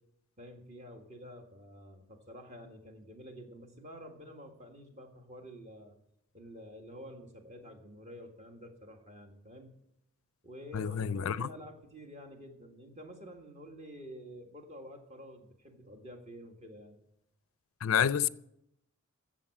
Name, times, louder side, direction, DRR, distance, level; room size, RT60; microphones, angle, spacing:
voice 1, 0.4-6.0 6.3-9.7 10.4-17.0, equal, 30° right, 1.8 m, -49 dB
voice 2, 10.7-11.5 17.8-18.3, left 8 dB, 70° left, 0.4 m, -28 dB
15.0 x 7.6 x 6.0 m
head